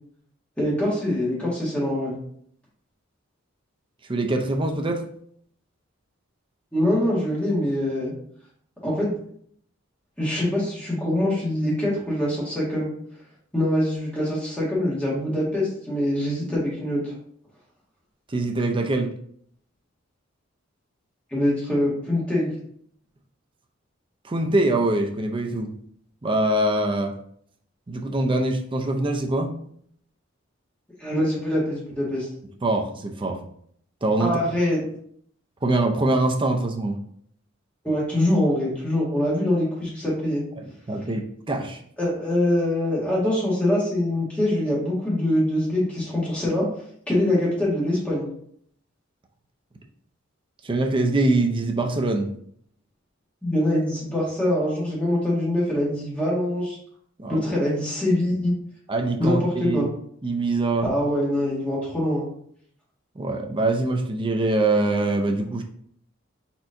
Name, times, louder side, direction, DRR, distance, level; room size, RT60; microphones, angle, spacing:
voice 1, 0.6-2.1 6.7-8.1 8.8-9.2 10.2-12.9 13.5-17.1 21.3-22.5 31.0-32.3 34.2-34.8 37.8-40.4 42.0-46.6 47.1-48.3 53.4-56.8 57.3-58.5 59.2-59.9 60.8-62.2, left 1 dB, 5° left, -6 dB, 1.7 m, -24 dB
voice 2, 4.1-5.0 18.3-19.1 24.2-25.7 26.2-27.1 27.9-29.5 32.6-33.4 34.0-34.3 35.6-37.0 40.6-41.8 50.6-52.3 57.2-57.5 58.9-59.9 60.2-60.9 63.2-65.6, right 2 dB, 25° right, 3 dB, 0.5 m, -23 dB
4.6 x 4.3 x 2.6 m, 0.64 s
head